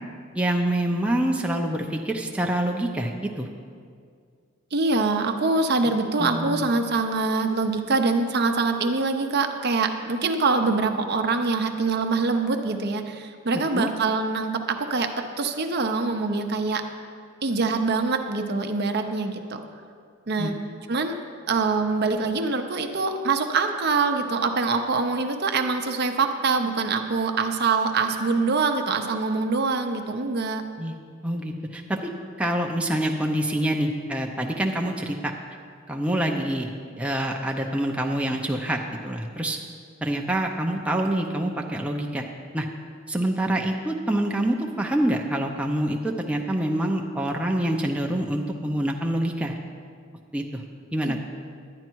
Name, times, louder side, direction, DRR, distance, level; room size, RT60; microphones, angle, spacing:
voice 1, 0.3-3.5 6.2-6.7 13.7-13.9 20.4-20.5 30.8-30.9 31.2-32.1 32.4-35.3 35.9-39.6 40.0-42.2 42.5-42.7 43.1-49.5 50.3-50.6 50.9-51.2, right 1 dB, 5° right, 1 dB, 0.6 m, -26 dB
voice 2, 4.7-16.8 17.4-19.6 20.3-20.6 20.9-21.2 21.5-30.6 51.0-51.2, right 3 dB, 50° right, 5 dB, 0.7 m, -24 dB
10.5 x 10.0 x 4.6 m, 2.1 s
head